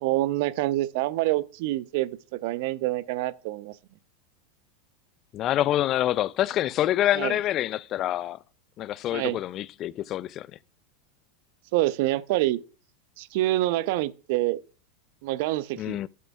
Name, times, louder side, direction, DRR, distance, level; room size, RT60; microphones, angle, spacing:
voice 1, 0.0-3.7 7.1-7.4 9.1-9.4 11.7-12.6 13.2-14.6 15.2-16.0, right 16 dB, 60° right, 0.6 m, -26 dB
voice 2, 5.3-8.4 8.8-10.5 15.8-16.1, left 13 dB, 40° left, 0.3 m, -26 dB
11.5 x 7.6 x 2.3 m
hypercardioid pair, 90°, 0 cm